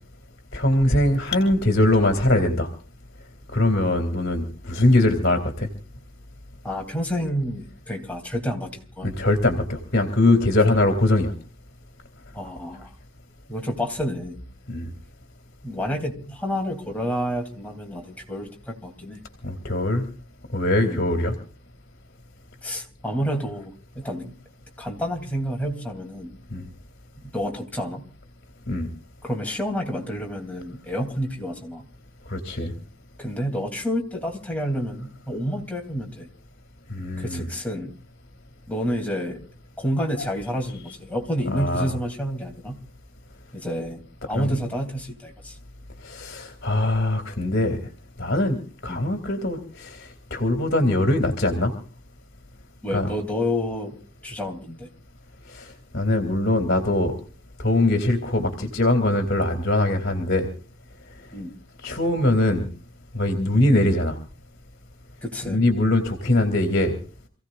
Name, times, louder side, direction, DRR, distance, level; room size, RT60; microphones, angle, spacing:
voice 1, 0.5-2.7 3.5-5.7 9.0-11.3 14.7-14.9 19.4-20.0 20.5-21.3 26.5-26.6 28.7-28.9 32.3-32.7 36.9-37.5 41.5-41.9 44.3-44.5 46.0-47.8 48.2-51.7 52.9-53.1 55.5-55.7 55.9-57.1 57.6-60.5 61.8-62.7 63.1-64.2 65.4-66.9, left 1 dB, 50° left, 5 dB, 2.6 m, -22 dB
voice 2, 6.6-8.7 9.0-9.1 12.3-12.9 13.5-14.4 15.6-19.2 20.8-21.0 22.6-24.3 24.8-26.3 27.2-28.1 29.2-31.8 33.2-36.3 37.2-37.9 38.7-39.4 39.8-42.8 43.5-45.6 48.9-49.1 52.8-54.0 54.2-54.9 61.3-61.5 65.2-65.6, equal, 5° left, 1 dB, 3.1 m, -29 dB
28.5 x 16.5 x 2.5 m, 0.40 s
head